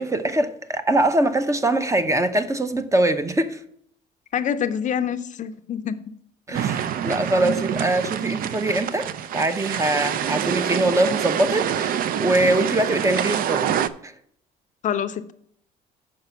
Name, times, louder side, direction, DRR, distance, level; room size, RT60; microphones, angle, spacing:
voice 1, 0.0-3.6 6.5-9.1 9.3-13.7 14.0-14.1, right 1 dB, 20° right, 0.7 m, -22 dB
voice 2, 4.3-6.0 14.8-15.3, left 8 dB, 45° left, 0.5 m, -26 dB
sound 1, 6.5-13.9, right 9 dB, 60° right, 0.5 m, -26 dB
6.9 x 5.2 x 6.9 m
cardioid pair, 110°, 17 cm